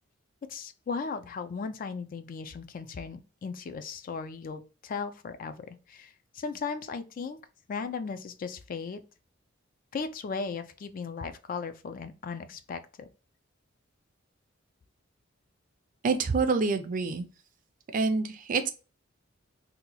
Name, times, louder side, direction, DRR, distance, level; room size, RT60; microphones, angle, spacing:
voice 1, 0.5-7.4 7.7-9.0 9.9-13.1, left 5 dB, 45° left, 0.3 m, -37 dB
voice 2, 16.0-17.3 17.9-18.7, right 4 dB, 45° right, 0.4 m, -27 dB
2.8 x 2.2 x 3.9 m
head